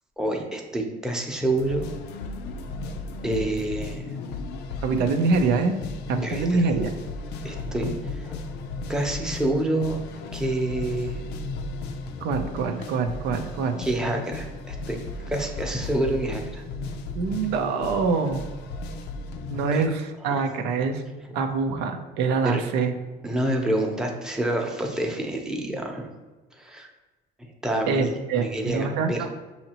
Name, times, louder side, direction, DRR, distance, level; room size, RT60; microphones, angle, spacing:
voice 1, 0.2-1.9 3.2-4.0 6.2-6.4 7.4-8.4 8.9-10.0 10.3-11.2 13.8-15.0 15.3-16.6 19.7-19.8 20.3-20.4 22.4-22.6 23.2-26.1 26.6-26.9 27.6-28.1 28.4-29.2, right 1 dB, 5° right, 1 dB, 0.7 m, -27 dB
sound 1, 1.6-19.9, left 3 dB, 85° left, 0.5 m, -35 dB
voice 2, 4.8-5.7 6.1-6.9 12.2-13.8 17.1-18.5 19.5-21.0 21.3-22.9 27.9-29.3, right 4 dB, 90° right, 5 dB, 0.6 m, -25 dB
6.4 x 2.8 x 2.9 m, 1.2 s
cardioid pair, 110°, 17 cm